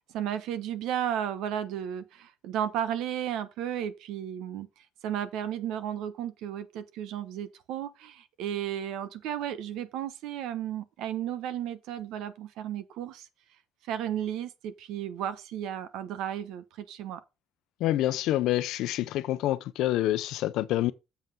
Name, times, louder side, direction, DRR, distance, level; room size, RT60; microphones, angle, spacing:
voice 1, 0.1-4.7 5.0-13.3 13.9-17.2, right 10 dB, 80° right, 1.0 m, -34 dB
voice 2, 17.8-20.9, left 14 dB, 75° left, 0.6 m, -27 dB
7.4 x 5.4 x 5.4 m
cardioid pair, 140°, 0 cm